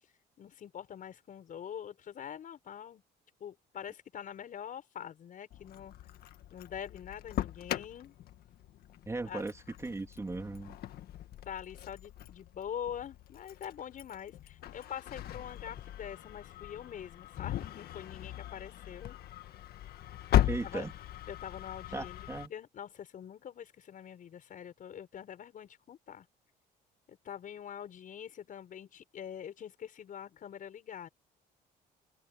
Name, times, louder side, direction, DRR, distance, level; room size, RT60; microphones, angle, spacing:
voice 1, 0.4-3.0 3.4-5.9 6.5-8.1 9.3-9.4 11.5-19.2 20.6-20.9 21.3-26.3 27.1-31.1, left 9 dB, 50° left, 7.3 m, -44 dB
Engine starting, 5.5-22.5, left 12 dB, 65° left, 1.7 m, -38 dB
voice 2, 9.1-10.8 20.5-20.9 21.9-22.5, right 3 dB, 15° right, 3.4 m, -37 dB
cardioid pair, 110°, 17 cm